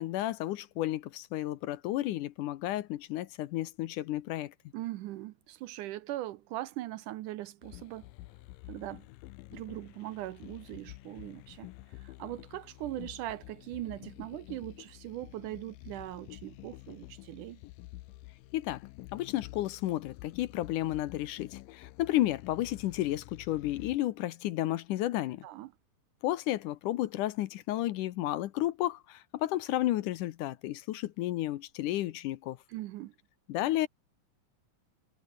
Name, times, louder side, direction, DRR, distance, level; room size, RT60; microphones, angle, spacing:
voice 1, 0.0-4.5 18.5-18.8 19.1-25.5 26.2-32.6 33.5-33.9, left 15 dB, 75° left, 2.2 m, -32 dB
voice 2, 4.7-8.1 8.7-9.1 9.5-11.7 12.0-17.6 25.4-25.7 32.7-33.1, right 15 dB, 75° right, 2.1 m, -40 dB
sound 1, 7.6-24.0, left 18 dB, 90° left, 2.5 m, -49 dB
omnidirectional pair, 4.0 m